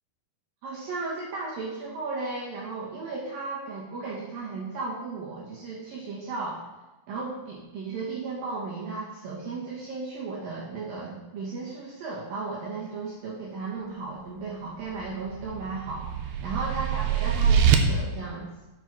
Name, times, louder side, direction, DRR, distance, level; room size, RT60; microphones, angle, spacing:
voice 1, 0.6-6.6 7.1-18.5, right 3 dB, 65° right, -5 dB, 2.9 m, -35 dB
sound 1, 14.9-17.8, right 8 dB, 85° right, 2.8 m, -24 dB
7.5 x 6.7 x 6.0 m, 1.1 s
omnidirectional pair, 4.7 m